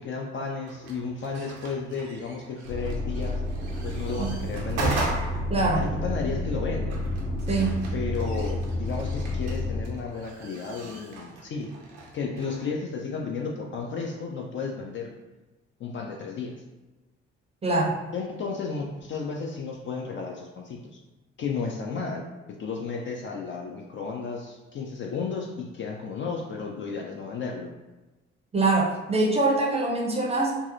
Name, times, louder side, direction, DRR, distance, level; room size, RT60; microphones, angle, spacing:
voice 1, 0.0-3.4 3.8-5.0 5.7-7.0 7.9-11.7 12.1-15.1 15.8-16.6 18.1-21.0 21.4-22.2 22.6-27.7, left 5 dB, 35° left, 0 dB, 0.4 m, -33 dB
sound 1, 0.7-12.7, right 2 dB, 70° right, 0.6 m, -38 dB
sound 2, 2.6-9.8, left 1 dB, 70° left, 0.7 m, -30 dB
voice 2, 5.5-5.9 7.5-7.8 17.6-18.0 28.5-30.6, right 2 dB, 15° right, -2 dB, 0.5 m, -24 dB
2.7 x 2.3 x 2.5 m, 1.1 s
figure-of-eight pair, 40°, 35 cm